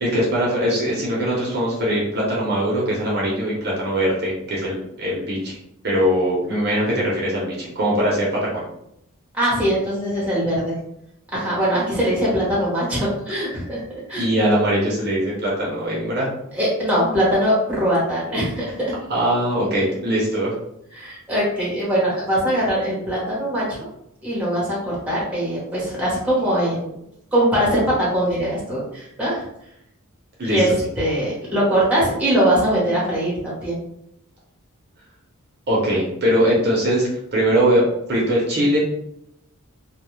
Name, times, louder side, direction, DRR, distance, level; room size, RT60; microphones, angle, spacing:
voice 1, 0.0-5.6 5.8-8.6 14.2-16.3 19.1-20.5 30.4-30.6 35.7-38.8, equal, 45° right, -5 dB, 0.7 m, -21 dB
voice 2, 9.3-10.7 11.3-13.8 14.1-14.3 16.5-18.6 20.9-23.8 24.2-26.9 27.3-29.4 30.4-33.8, equal, 5° right, -6 dB, 0.9 m, -21 dB
2.3 x 2.2 x 3.0 m, 0.78 s
head